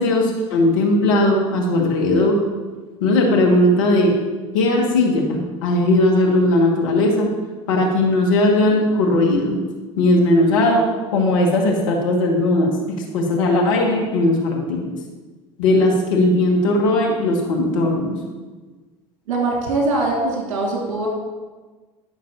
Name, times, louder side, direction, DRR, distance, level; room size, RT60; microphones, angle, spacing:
voice 1, 0.0-2.4 3.0-4.2 4.5-7.3 7.7-9.6 10.0-10.8 11.1-12.7 13.1-15.0 15.6-18.1, left 1 dB, 75° left, 0 dB, 2.0 m, -18 dB
voice 2, 19.3-21.1, right 2 dB, 75° right, -2 dB, 3.2 m, -22 dB
15.5 x 6.3 x 2.8 m, 1.3 s
hypercardioid pair, 75°, 17 cm